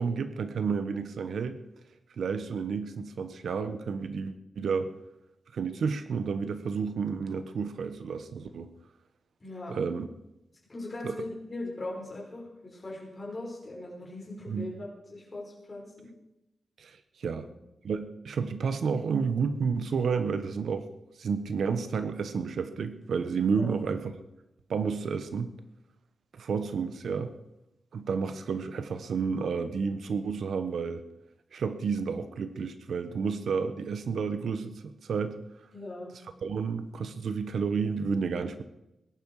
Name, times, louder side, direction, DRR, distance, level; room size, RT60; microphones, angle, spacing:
voice 1, 0.0-1.6 2.2-4.9 5.5-8.7 9.7-10.1 11.0-11.2 14.5-14.7 16.8-17.5 17.8-20.9 21.2-24.1 24.7-25.5 26.3-27.3 27.9-31.0 31.5-35.3 36.4-38.6, right 5 dB, 70° right, 10 dB, 1.1 m, -31 dB
voice 2, 9.4-9.7 10.7-16.1 17.2-17.5 23.6-23.7 35.7-36.1, left 2 dB, 25° left, -3 dB, 5.7 m, -40 dB
20.5 x 11.0 x 4.9 m, 0.90 s
wide cardioid pair, 160°, 0 cm